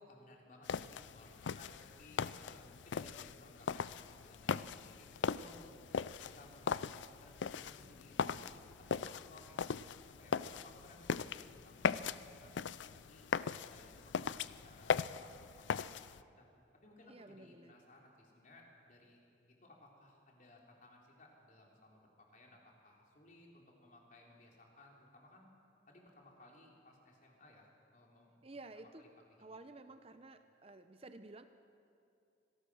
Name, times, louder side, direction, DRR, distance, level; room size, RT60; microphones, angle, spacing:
voice 1, 0.0-5.8 6.2-9.7 10.2-12.1 12.4-13.2 13.6-16.0 16.4-16.5 16.8-19.2 19.5-25.5 25.9-29.5, left 1 dB, 45° left, -1 dB, 3.8 m, -61 dB
sound 1, 0.6-16.2, left 6 dB, 85° left, 0.5 m, -39 dB
voice 2, 17.0-17.7 28.4-29.1 29.4-31.4, right 2 dB, 35° right, 9 dB, 0.8 m, -53 dB
25.5 x 18.0 x 6.4 m, 2.6 s
head